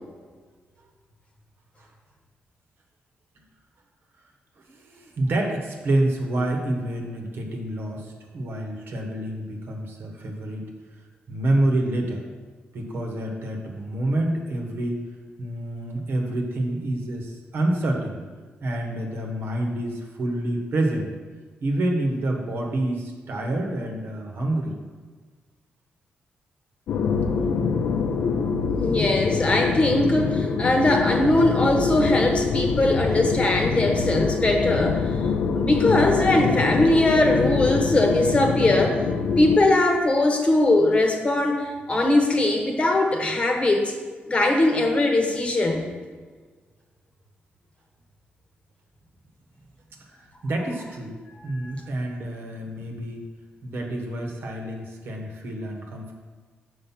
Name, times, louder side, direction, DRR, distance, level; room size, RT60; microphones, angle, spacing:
voice 1, 4.7-10.7 11.3-12.2 12.7-15.0 15.4-18.2 18.6-21.1 21.6-24.8 50.4-51.2 51.4-53.2 53.6-56.1, right 1 dB, 70° right, 1 dB, 1.2 m, -27 dB
sound 1, 26.9-39.6, left 5 dB, 85° left, 0.6 m, -24 dB
voice 2, 28.7-35.1 35.5-39.0 39.4-43.9 44.3-45.9 51.5-51.7, left 2 dB, 30° left, 2 dB, 1.1 m, -21 dB
5.7 x 5.1 x 5.9 m, 1.5 s
cardioid pair, 100°, 4 cm